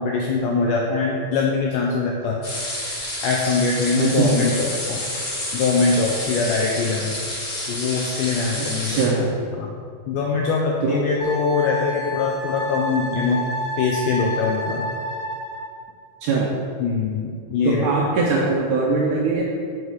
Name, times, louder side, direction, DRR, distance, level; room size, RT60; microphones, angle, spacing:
voice 1, 0.0-2.4 3.2-5.0 5.5-7.2 7.7-9.0 9.5-9.7 10.1-13.5 13.8-14.9 16.8-18.1, left 4 dB, 85° left, -2 dB, 1.8 m, -22 dB
sound 1, 2.4-9.0, left 1 dB, 40° left, 1.3 m, -29 dB
voice 2, 4.0-4.5 8.6-9.3 10.8-11.0 16.2-16.5 17.6-19.4, right 4 dB, 80° right, -3 dB, 1.9 m, -21 dB
Wind instrument woodwind instrument, 11.2-15.7, left 1 dB, 60° left, 1.5 m, -29 dB
6.4 x 4.7 x 5.5 m, 2.2 s
omnidirectional pair, 4.4 m